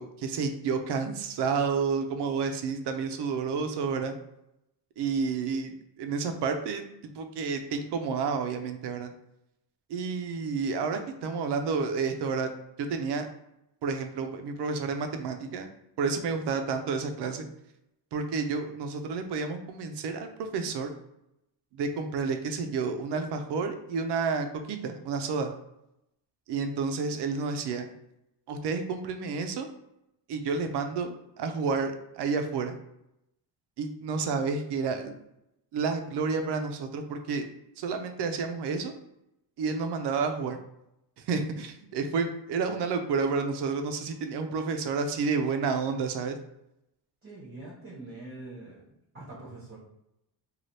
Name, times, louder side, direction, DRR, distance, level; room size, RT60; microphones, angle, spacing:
voice 1, 0.0-4.2 5.0-9.1 9.9-12.5 12.8-13.3 13.8-15.7 16.0-17.5 18.1-20.9 21.7-25.5 26.5-27.9 28.5-29.7 30.3-32.7 33.8-35.2 35.7-37.5 37.8-38.9 39.6-40.6 41.3-46.4, right 5 dB, 70° right, 6 dB, 0.5 m, -30 dB
voice 2, 47.2-48.9 49.1-49.8, right 2 dB, 30° right, -7 dB, 0.8 m, -44 dB
3.2 x 2.4 x 2.6 m, 0.83 s
cardioid pair, 145°, 43 cm